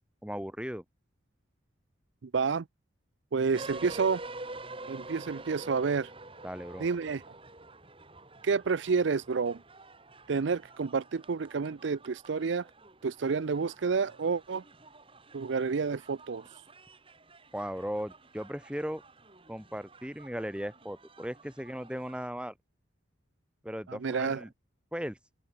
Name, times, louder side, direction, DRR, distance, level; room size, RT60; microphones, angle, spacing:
voice 1, 0.2-0.8 6.4-6.9 17.5-19.0 19.5-22.5 23.6-24.5 24.9-25.2, equal, 5° right, 4.5 m, -37 dB
voice 2, 2.2-2.6 3.3-4.2 4.9-6.1 6.8-7.2 8.4-9.6 10.3-12.7 13.0-14.6 15.3-16.5 23.9-24.4, right 5 dB, 65° right, 0.5 m, -29 dB
sound 1, 3.5-22.3, right 2 dB, 25° right, 4.5 m, -48 dB
open air
head